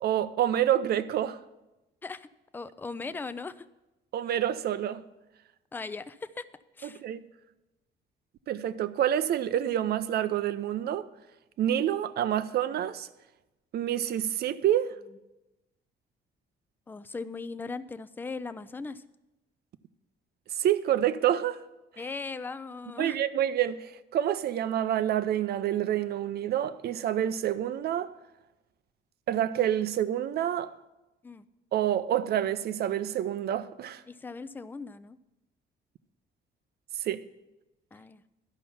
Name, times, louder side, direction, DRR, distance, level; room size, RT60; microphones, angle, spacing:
voice 1, 0.0-1.4 4.1-5.0 7.0-7.2 8.5-11.1 11.6-13.1 13.7-14.9 20.6-21.6 23.0-28.1 29.3-30.7 31.7-34.0 37.0-37.2, right 11 dB, 60° right, 0.5 m, -27 dB
voice 2, 2.5-3.7 5.7-6.4 6.8-7.0 16.9-19.0 22.0-23.2 31.2-31.5 34.1-35.2 37.9-38.2, left 4 dB, 10° left, 0.3 m, -38 dB
12.0 x 5.6 x 7.0 m
cardioid pair, 150°, 19 cm